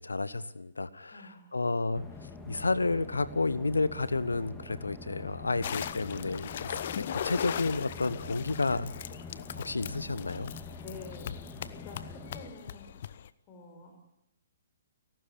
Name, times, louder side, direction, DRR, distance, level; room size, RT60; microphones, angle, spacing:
voice 1, 0.0-1.2 1.5-2.0 2.5-8.9 9.6-10.5, left 3 dB, 75° left, 15 dB, 1.2 m, -31 dB
voice 2, 1.1-1.6 10.8-11.4 11.7-12.9 13.5-13.9, left 4 dB, 30° left, 1 dB, 4.8 m, -48 dB
sound 1, 1.9-12.5, left 3 dB, 10° left, 2.6 m, -46 dB
sound 2, 5.6-13.3, left 9 dB, 50° left, 0.8 m, -39 dB
30.0 x 12.5 x 8.6 m, 0.90 s
figure-of-eight pair, 125°, 0 cm